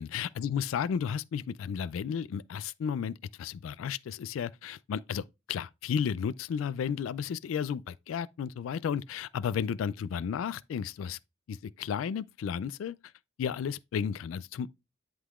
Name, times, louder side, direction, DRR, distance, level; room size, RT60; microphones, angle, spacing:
voice 1, 0.0-11.2 11.5-13.0 13.4-14.7, left 7 dB, 90° left, 0.3 m, -33 dB
11.0 x 3.8 x 2.4 m
head